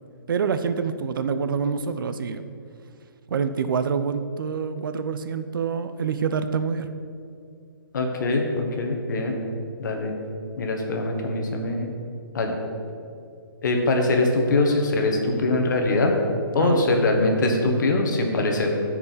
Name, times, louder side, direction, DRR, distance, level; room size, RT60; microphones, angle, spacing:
voice 1, 0.3-2.4 3.3-6.9 16.6-16.9, right 6 dB, 60° right, 10 dB, 0.5 m, -26 dB
voice 2, 7.9-9.4 9.8-10.1 10.6-11.9 12.3-12.6 13.6-16.1 16.5-18.8, left 2 dB, 55° left, 3 dB, 1.3 m, -22 dB
12.5 x 4.8 x 4.1 m, 2.4 s
hypercardioid pair, 165°, 12 cm